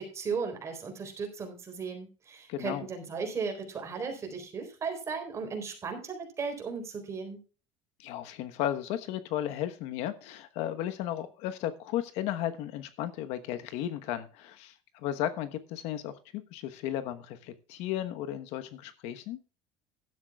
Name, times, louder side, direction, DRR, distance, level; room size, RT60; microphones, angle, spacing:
voice 1, 0.0-7.4, right 5 dB, 25° right, 4 dB, 3.9 m, -36 dB
voice 2, 2.5-2.9 8.0-19.4, left 11 dB, 70° left, 10 dB, 1.2 m, -34 dB
16.0 x 12.0 x 2.4 m, 0.35 s
cardioid pair, 160°, 11 cm